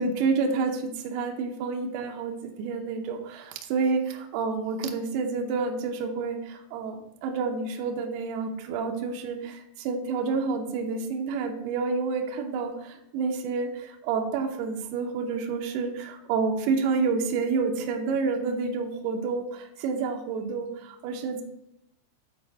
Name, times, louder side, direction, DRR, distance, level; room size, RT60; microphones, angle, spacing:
voice 1, 0.0-21.4, right 4 dB, 85° right, 3 dB, 2.3 m, -29 dB
10.0 x 4.3 x 4.1 m, 0.82 s
omnidirectional pair, 5.7 m